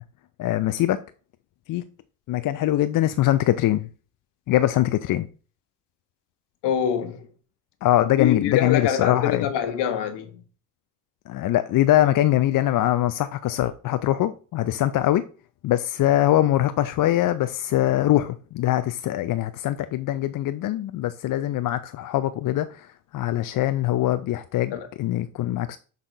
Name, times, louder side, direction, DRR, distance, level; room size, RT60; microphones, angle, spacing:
voice 1, 0.4-1.0 1.7-1.8 2.3-3.9 4.5-5.3 7.8-9.4 11.3-15.2 15.6-22.9 23.1-25.8, left 13 dB, 45° left, 0.5 m, -22 dB
voice 2, 6.6-7.3 8.2-10.4 24.7-24.9, left 9 dB, 60° left, 1.3 m, -25 dB
6.3 x 4.1 x 4.5 m
hypercardioid pair, 60°, 45 cm